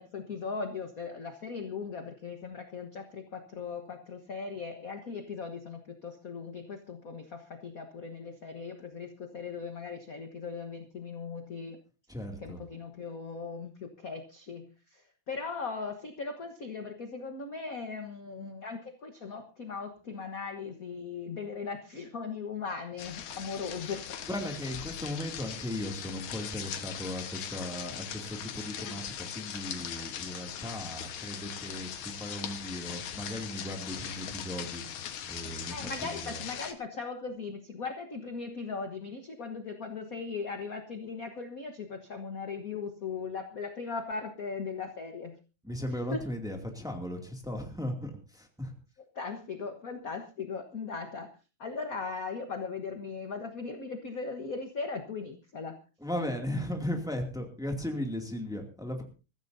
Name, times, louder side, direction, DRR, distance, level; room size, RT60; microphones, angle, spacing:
voice 1, 0.0-11.8 12.4-24.0 35.7-45.4 46.1-46.2 49.1-51.3 51.6-55.8, left 4 dB, 50° left, 5 dB, 1.0 m, -38 dB
voice 2, 12.1-12.6 24.3-34.8 35.3-36.4 45.6-48.7 56.0-59.0, left 1 dB, ahead, 2 dB, 1.9 m, -37 dB
sound 1, 23.0-36.7, left 9 dB, 85° left, 2.7 m, -40 dB
23.5 x 14.5 x 2.7 m, 0.34 s
omnidirectional pair, 3.4 m